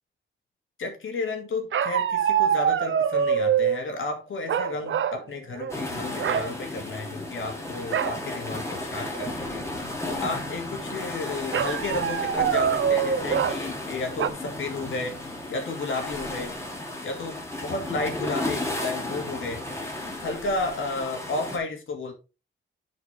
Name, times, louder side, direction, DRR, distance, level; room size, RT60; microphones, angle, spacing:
voice 1, 0.8-16.6 17.0-19.6 20.2-22.1, left 3 dB, 70° left, 3 dB, 2.7 m, -33 dB
sound 1, 1.7-3.8 4.5-5.2 5.5-5.8 6.2-6.5 7.9-8.2 8.7-8.8 9.1-9.6 11.5-13.6 14.2-14.3, right 8 dB, 70° right, 0.8 m, -24 dB
sound 2, 5.7-21.6, left 1 dB, 15° left, 2.7 m, -34 dB
10.5 x 5.1 x 3.5 m, 0.31 s
wide cardioid pair, 130°, 21 cm